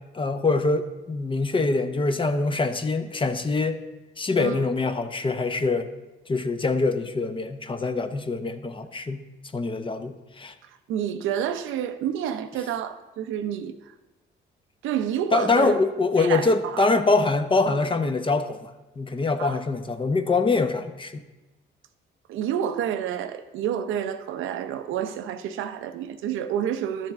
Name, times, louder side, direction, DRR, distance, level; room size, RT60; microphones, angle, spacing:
voice 1, 0.1-3.8 4.2-5.9 6.3-9.2 9.5-10.5 15.3-18.7 19.0-21.2, left 3 dB, 25° left, 0.7 m, -24 dB
voice 2, 10.9-13.7 14.8-15.8 16.2-16.9 19.4-19.6 22.3-27.1, right 9 dB, 85° right, 0.6 m, -29 dB
11.5 x 6.7 x 3.6 m
cardioid pair, 90°, 20 cm